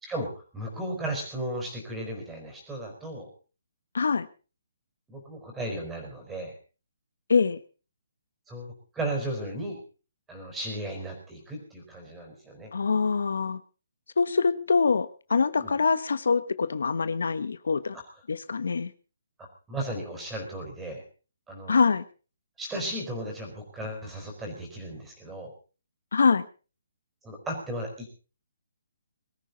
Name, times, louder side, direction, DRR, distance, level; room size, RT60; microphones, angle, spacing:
voice 1, 0.0-3.3 5.1-6.5 8.5-9.8 10.3-12.7 15.6-15.7 17.9-18.0 19.4-21.0 21.5-21.8 22.6-25.5 27.2-28.1, right 1 dB, 5° right, 3 dB, 4.8 m, -35 dB
voice 2, 3.9-4.3 7.3-7.6 12.7-13.6 14.2-18.0 18.3-18.9 21.7-22.0 26.1-26.4, left 5 dB, 75° left, 14 dB, 1.2 m, -24 dB
22.0 x 14.0 x 4.1 m, 0.36 s
hypercardioid pair, 170°, 0 cm